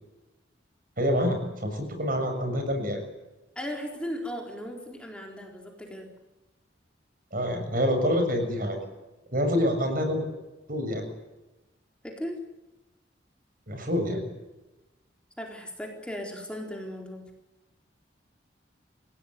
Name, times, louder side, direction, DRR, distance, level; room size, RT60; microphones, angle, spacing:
voice 1, 1.0-3.0 7.3-8.8 9.3-10.2 10.7-11.0 13.7-14.2, equal, 50° right, 6 dB, 7.0 m, -26 dB
voice 2, 3.6-6.1 12.0-12.4 15.4-17.2, equal, 5° left, 0 dB, 4.3 m, -37 dB
29.5 x 17.0 x 9.7 m, 1.1 s
head